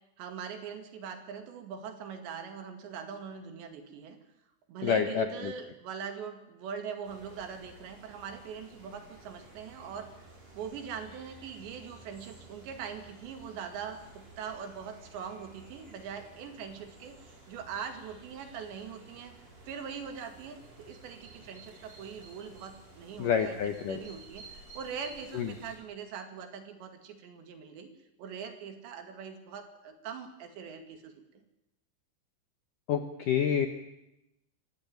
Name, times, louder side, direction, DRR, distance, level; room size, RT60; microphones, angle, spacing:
voice 1, 0.2-4.2 4.7-10.3 10.5-19.3 19.7-27.9 28.2-31.2, right 7 dB, 70° right, 7 dB, 4.4 m, -42 dB
voice 2, 4.8-5.5 23.2-24.0 25.3-25.5 32.9-33.7, left 8 dB, 70° left, 7 dB, 2.0 m, -28 dB
sound 1, 7.0-25.8, right 2 dB, 35° right, 6.5 m, -54 dB
25.0 x 16.0 x 9.4 m, 0.88 s
omnidirectional pair, 5.3 m